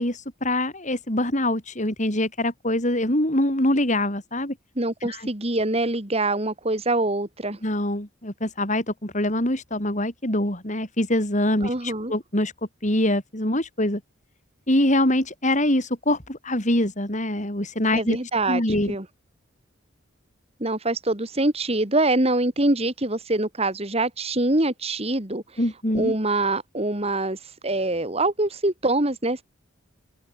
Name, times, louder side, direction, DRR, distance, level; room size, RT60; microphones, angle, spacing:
voice 1, 0.0-4.6 5.0-5.2 7.6-12.5 12.8-14.0 14.7-18.2 18.5-18.9 25.6-26.1, left 1 dB, 40° left, 6.3 m, -24 dB
voice 2, 4.8-7.6 11.6-12.1 17.9-19.1 20.6-25.4 25.9-29.4, right 2 dB, 30° right, 2.7 m, -24 dB
open air
head